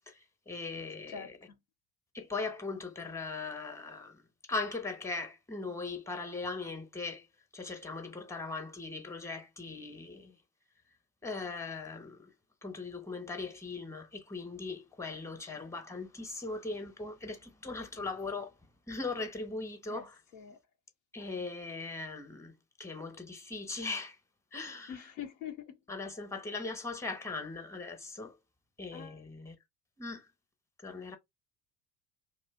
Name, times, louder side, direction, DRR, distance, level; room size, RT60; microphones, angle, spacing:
voice 1, 0.5-1.4 2.1-4.2 4.5-7.3 7.5-10.4 11.2-12.3 12.6-18.5 18.9-20.1 21.1-22.5 22.8-24.2 24.5-25.0 25.9-28.4 28.8-29.5 30.0-30.3 30.8-31.2, left 3 dB, 5° left, 1.0 m, -39 dB
voice 2, 1.1-1.5 19.9-20.1 20.3-20.6 24.9-25.8 28.9-29.2, left 8 dB, 80° left, 0.9 m, -44 dB
2.7 x 2.4 x 3.6 m
hypercardioid pair, 65°, 44 cm